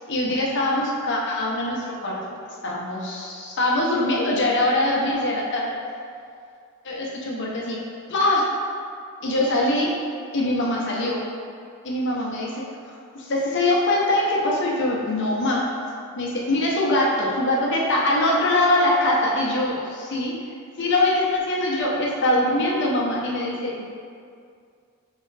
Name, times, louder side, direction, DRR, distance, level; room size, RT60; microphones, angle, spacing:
voice 1, 0.1-2.4 2.6-5.8 6.8-7.8 8.1-8.5 9.2-10.0 10.3-11.2 11.8-15.7 16.2-20.4 20.8-23.8, left 1 dB, 55° left, -3 dB, 0.7 m, -23 dB
3.7 x 3.3 x 3.2 m, 2.3 s
head